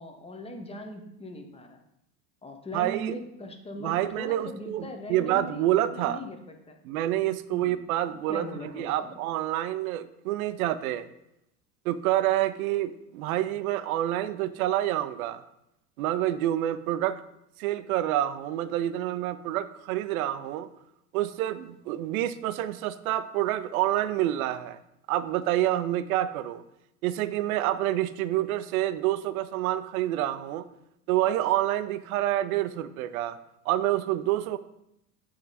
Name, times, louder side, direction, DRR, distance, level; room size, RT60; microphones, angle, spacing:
voice 1, 0.0-1.8 2.4-6.8 7.5-7.9 8.3-9.2, equal, 10° left, 5 dB, 0.9 m, -40 dB
voice 2, 2.7-3.1 3.8-6.2 6.8-11.1 11.8-15.4 16.0-17.2 17.6-20.7 21.1-24.8 25.1-26.6 27.0-30.6 31.1-33.4 33.7-34.6, right 13 dB, 60° right, 14 dB, 0.6 m, -28 dB
8.6 x 3.8 x 4.1 m, 0.82 s
figure-of-eight pair, 80°, 49 cm